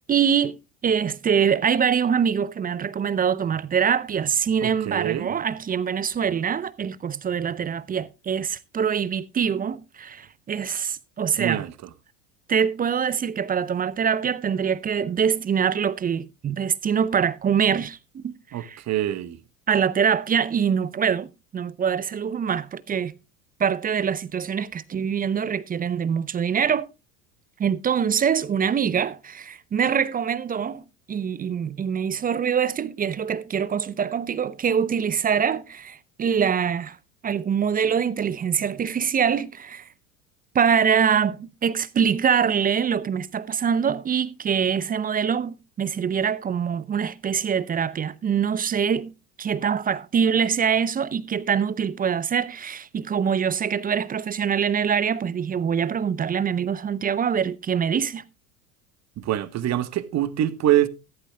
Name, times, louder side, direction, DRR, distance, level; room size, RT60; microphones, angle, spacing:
voice 1, 0.1-0.6 0.8-11.6 12.5-18.2 18.5-18.8 19.7-23.1 23.6-26.9 27.6-37.0 37.2-39.9 40.5-58.2, right 7 dB, 20° right, 0.6 m, -24 dB
voice 2, 4.6-5.3 11.4-11.7 18.5-19.4 59.2-60.9, right 12 dB, 35° right, 1.2 m, -24 dB
14.5 x 12.5 x 2.2 m
hypercardioid pair, 80°, 43 cm